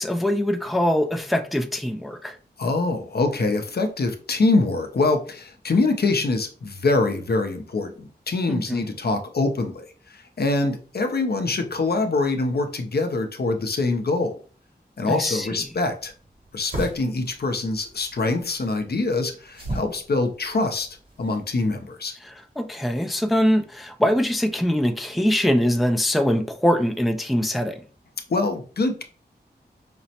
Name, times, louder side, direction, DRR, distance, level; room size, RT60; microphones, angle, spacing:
voice 1, 0.0-2.4 8.5-8.9 15.1-15.7 22.2-27.8, equal, ahead, 0.4 m, -23 dB
voice 2, 2.6-9.9 10.1-14.4 15.0-16.1 16.5-20.9 21.2-22.1 28.3-29.0, left 3 dB, 65° left, 0.6 m, -24 dB
sound 1, 15.6-21.7, right 1 dB, 55° right, 1.9 m, -38 dB
5.1 x 2.0 x 2.8 m
wide cardioid pair, 75°, 18 cm